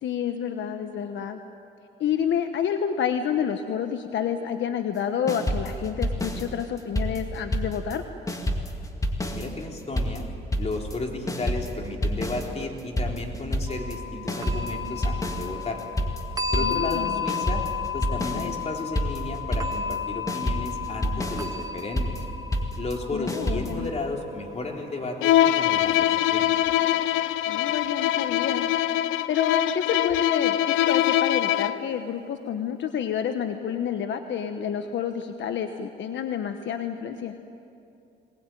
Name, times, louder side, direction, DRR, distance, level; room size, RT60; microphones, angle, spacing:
voice 1, 0.0-1.4 2.0-8.0 16.6-17.2 18.3-18.5 23.1-23.9 27.5-28.9 29.3-37.3, left 8 dB, 70° left, 7 dB, 1.1 m, -29 dB
sound 1, 5.3-8.0 8.3-23.9, equal, 15° left, 2.2 m, -29 dB
voice 2, 9.2-10.2 10.6-15.8 16.5-17.6 17.9-22.2 22.8-26.5, left 2 dB, 35° left, 1 dB, 3.7 m, -33 dB
sound 2, 13.7-26.6, left 6 dB, 20° right, 1.7 m, -34 dB
Bowed string instrument, 25.2-31.9, left 13 dB, 85° left, 0.6 m, -23 dB
22.5 x 19.5 x 9.1 m, 2.6 s
cardioid pair, 90°, 20 cm